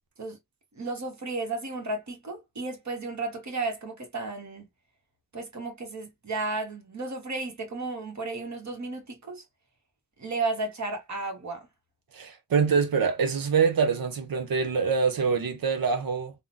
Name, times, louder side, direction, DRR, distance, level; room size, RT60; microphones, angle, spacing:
voice 1, 0.8-4.7 5.3-9.4 10.2-11.7, right 3 dB, 55° right, 1.3 m, -33 dB
voice 2, 12.1-16.3, right 5 dB, 90° right, 0.8 m, -25 dB
3.6 x 2.1 x 2.5 m
cardioid pair, 60°, 34 cm